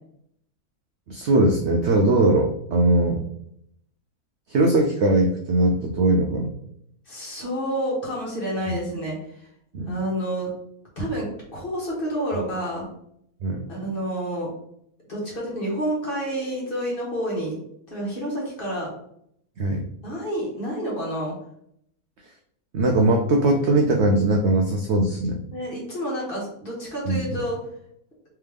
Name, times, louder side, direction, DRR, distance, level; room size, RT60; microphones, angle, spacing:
voice 1, 1.1-3.2 4.5-6.5 8.7-8.8 9.7-9.9 13.4-13.6 19.6-19.8 22.7-25.4 27.1-27.4, right 2 dB, 65° right, 1 dB, 0.7 m, -20 dB
voice 2, 7.1-9.5 9.8-10.5 11.0-12.9 13.7-14.5 15.1-17.6 17.9-18.9 20.0-21.3 25.5-27.6, equal, 40° left, -4 dB, 1.4 m, -29 dB
3.4 x 3.4 x 3.3 m, 0.72 s
omnidirectional pair, 1.6 m